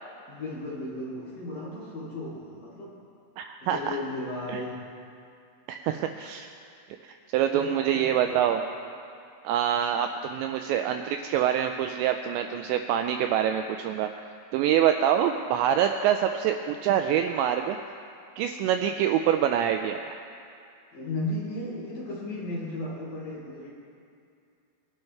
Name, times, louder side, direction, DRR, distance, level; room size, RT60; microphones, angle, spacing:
voice 1, 0.3-3.0 3.6-4.8 5.9-6.0 7.5-8.4 20.9-23.7, left 1 dB, 45° left, -6 dB, 4.2 m, -35 dB
voice 2, 3.4-4.0 4.5-4.6 5.7-6.5 7.0-8.6 9.4-14.2 14.5-17.8 18.4-20.2, right 10 dB, 85° right, 6 dB, 2.6 m, -25 dB
21.5 x 11.5 x 3.3 m, 2.5 s
omnidirectional pair, 5.5 m